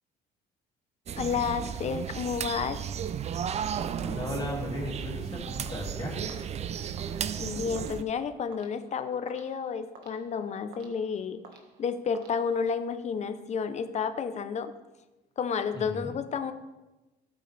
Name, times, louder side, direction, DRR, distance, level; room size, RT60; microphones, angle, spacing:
sound 1, 1.1-8.0, right 8 dB, 40° right, 0.5 m, -34 dB
voice 1, 1.2-2.8 7.4-11.4 11.8-14.7 15.4-16.5, left 6 dB, 40° left, 10 dB, 0.8 m, -31 dB
voice 2, 4.0-6.4 15.7-16.1, left 1 dB, 25° left, -3 dB, 3.3 m, -36 dB
sound 2, 5.7-12.9, right 4 dB, 85° right, 1.6 m, -55 dB
13.0 x 8.3 x 3.4 m, 1.1 s
cardioid pair, 110°, 17 cm